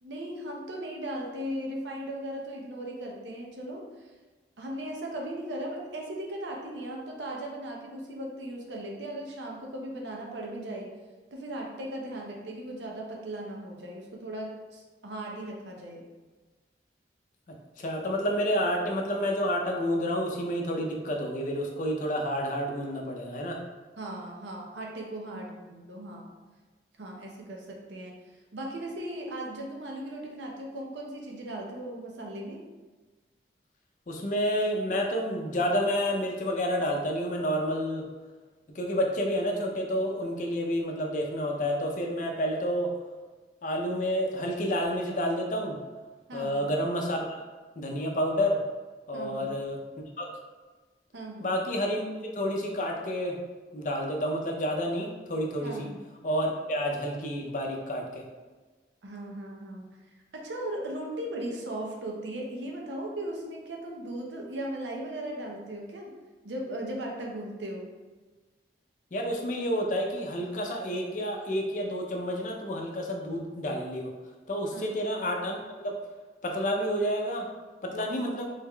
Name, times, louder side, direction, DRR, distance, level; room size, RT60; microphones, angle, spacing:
voice 1, 0.0-4.1 4.6-10.9 11.3-16.1 24.0-26.4 27.0-28.2 28.5-32.6 46.3-46.6 49.1-49.5 51.1-51.5 55.6-56.0 59.0-60.0 60.3-66.1 66.4-67.9 74.7-74.9, right 1 dB, 85° right, -1 dB, 0.7 m, -37 dB
voice 2, 17.8-23.6 34.1-38.1 38.8-42.9 43.6-45.8 46.3-47.4 47.8-48.6 49.1-49.8 50.2-50.3 51.4-52.0 52.3-53.4 53.7-55.9 56.2-58.2 69.1-74.1 74.5-76.0 76.4-77.5 77.8-78.4, equal, 45° left, 1 dB, 0.5 m, -29 dB
3.5 x 3.5 x 2.2 m, 1.3 s
head